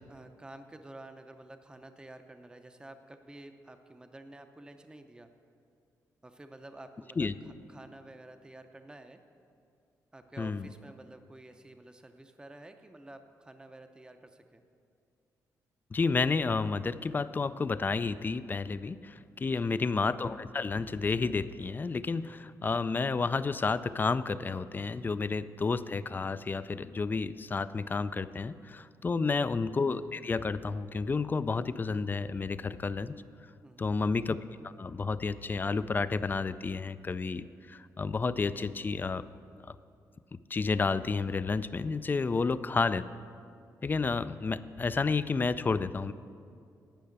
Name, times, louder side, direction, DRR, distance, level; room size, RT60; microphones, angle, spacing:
voice 1, 0.0-5.3 6.2-7.3 7.7-9.2 10.1-14.6 19.6-19.9 29.1-29.5 33.6-34.0 42.3-42.8, right 1 dB, 10° right, 7 dB, 0.6 m, -51 dB
voice 2, 10.4-10.7 15.9-33.2 33.8-34.4 34.6-39.3 40.3-43.0 43.8-46.1, left 4 dB, 30° left, 15 dB, 0.3 m, -31 dB
10.5 x 5.6 x 8.6 m, 2.3 s
cardioid pair, 85°, 7 cm